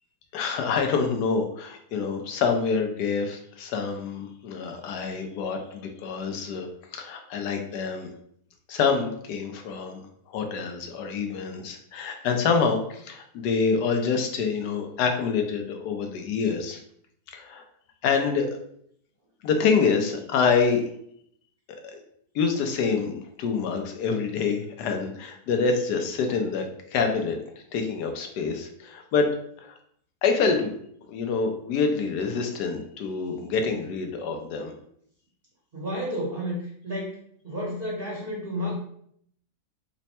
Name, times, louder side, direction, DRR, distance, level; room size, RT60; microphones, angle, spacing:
voice 1, 0.3-8.1 8.7-16.8 17.3-17.6 18.0-18.6 19.4-20.8 21.8-22.0 22.3-26.7 26.9-27.4 27.7-29.3 29.6-29.8 30.2-30.7 31.1-34.7, left 5 dB, 85° left, 4 dB, 1.2 m, -26 dB
voice 2, 35.7-37.2 37.4-38.7, equal, 40° right, -6 dB, 0.9 m, -31 dB
3.3 x 2.1 x 4.1 m, 0.68 s
omnidirectional pair, 1.7 m